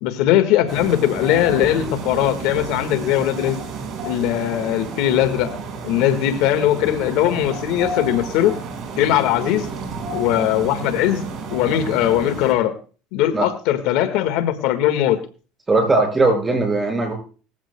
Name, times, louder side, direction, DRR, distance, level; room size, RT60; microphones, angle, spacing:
voice 1, 0.0-3.6 4.0-5.5 5.8-8.5 9.0-9.7 10.1-11.3 11.5-12.7 13.1-15.2, left 12 dB, 70° left, 8 dB, 1.6 m, -20 dB
sound 1, 0.7-12.5, right 4 dB, 45° right, 5.0 m, -31 dB
voice 2, 15.7-17.1, right 2 dB, 15° right, 3 dB, 5.6 m, -18 dB
19.5 x 15.0 x 2.2 m, 0.38 s
supercardioid pair, 120°, 0 cm